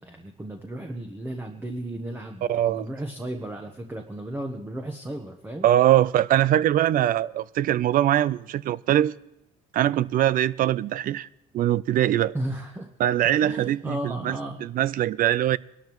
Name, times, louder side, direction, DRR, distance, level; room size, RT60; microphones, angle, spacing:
voice 1, 0.0-5.7 12.3-12.9 13.4-14.6, right 1 dB, 10° right, 1.0 m, -34 dB
voice 2, 2.5-2.9 5.6-9.1 9.7-11.3 11.5-12.3 13.0-15.6, right 12 dB, 55° right, 0.4 m, -22 dB
21.5 x 12.5 x 3.1 m
cardioid pair, 110°, 17 cm